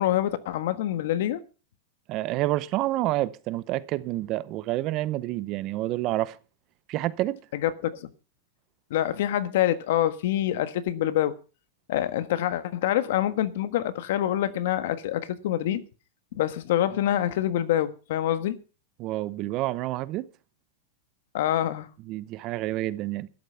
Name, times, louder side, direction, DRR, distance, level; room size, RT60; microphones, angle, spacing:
voice 1, 0.0-1.4 7.5-8.1 8.9-11.3 11.9-15.8 16.3-18.6 21.3-21.9, left 12 dB, 55° left, 1.5 m, -26 dB
voice 2, 2.1-6.4 6.9-7.4 19.0-20.3 22.1-23.3, right 16 dB, 30° right, 0.7 m, -28 dB
13.0 x 11.5 x 5.6 m
supercardioid pair, 170°, 0 cm